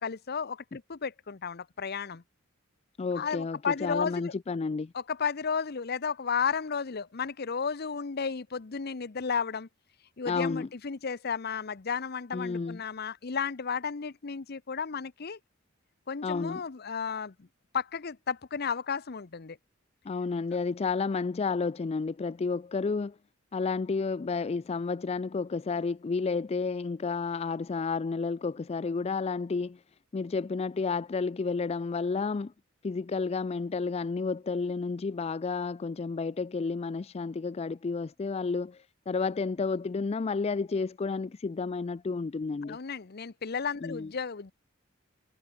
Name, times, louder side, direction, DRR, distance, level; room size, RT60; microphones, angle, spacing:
voice 1, 0.0-2.2 3.1-4.3 4.9-9.7 10.2-15.4 16.1-17.5 17.7-19.6 42.6-44.5, left 6 dB, 50° left, 0.7 m, -33 dB
voice 2, 3.0-4.9 10.3-10.7 12.3-12.8 16.2-16.6 20.1-23.2 23.5-29.8 30.1-32.5 32.8-42.8 43.8-44.1, left 4 dB, 30° left, 0.4 m, -31 dB
head